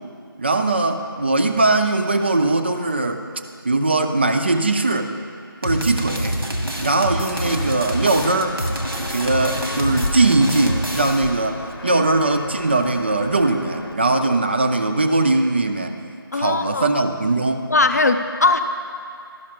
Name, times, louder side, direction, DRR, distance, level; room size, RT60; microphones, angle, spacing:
voice 1, 0.4-3.2 3.6-5.1 5.6-6.4 6.8-8.6 9.1-16.0 16.3-17.7, right 2 dB, 30° right, 6 dB, 0.4 m, -20 dB
sound 1, 5.6-11.4, equal, 85° right, 1.5 m, -26 dB
Walk footsteps, 7.2-13.9, left 2 dB, 75° left, 0.8 m, -33 dB
voice 2, 16.3-16.9 17.7-18.6, left 3 dB, 45° left, 8 dB, 0.4 m, -20 dB
12.0 x 5.6 x 5.7 m, 2.4 s
figure-of-eight pair, 160°, 12 cm